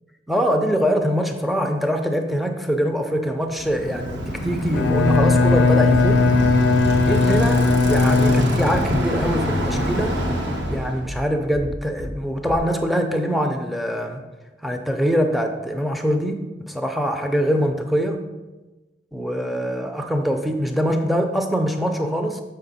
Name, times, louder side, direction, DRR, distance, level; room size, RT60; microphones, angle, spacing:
voice 1, 0.3-6.2 7.0-10.2 10.7-14.2 14.6-18.2 19.1-22.4, equal, ahead, 5 dB, 0.4 m, -23 dB
Bicycle, 3.5-11.0, equal, 80° right, 1.1 m, -26 dB
Bowed string instrument, 4.7-9.0, left 3 dB, 90° left, 0.5 m, -18 dB
Bass drum, 8.7-9.3 9.6-10.2 10.6-11.2 11.5-12.1 12.4-12.6, equal, 50° right, 0.7 m, -33 dB
6.6 x 5.4 x 4.0 m, 1.1 s
head